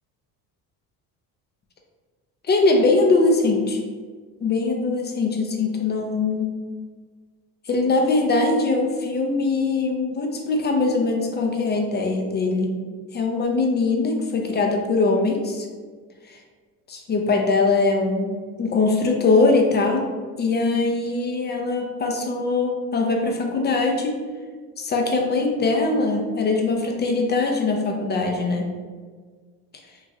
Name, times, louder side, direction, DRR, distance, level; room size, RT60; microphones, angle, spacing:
voice 1, 2.5-3.8 4.4-6.5 7.7-12.8 13.1-15.7 16.9-20.1 20.4-24.2 24.8-28.7, left 3 dB, 25° left, 2 dB, 0.4 m, -21 dB
3.0 x 2.5 x 2.5 m, 1.5 s
hypercardioid pair, 70°, 48 cm